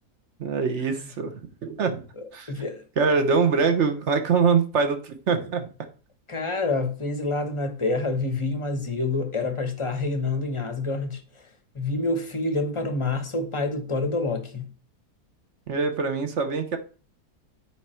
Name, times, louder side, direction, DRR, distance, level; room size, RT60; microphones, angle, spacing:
voice 1, 0.4-1.3 1.6-2.0 2.3-2.5 3.0-5.7 15.7-16.8, right 5 dB, 50° right, 1.2 m, -23 dB
voice 2, 2.5-2.8 6.3-11.2 11.7-14.7, left 3 dB, 25° left, 0.8 m, -27 dB
9.3 x 4.8 x 4.4 m
omnidirectional pair, 1.7 m